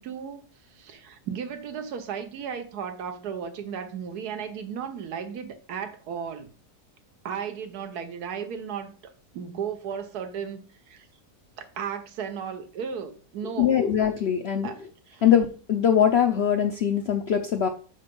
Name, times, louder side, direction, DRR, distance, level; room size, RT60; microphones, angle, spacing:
voice 1, 0.0-6.5 7.2-11.1 11.6-13.9 14.6-15.3, right 7 dB, 75° right, 1.4 m, -35 dB
voice 2, 13.6-14.7 15.2-17.7, left 9 dB, 65° left, 0.6 m, -22 dB
6.7 x 3.9 x 5.2 m
omnidirectional pair, 1.7 m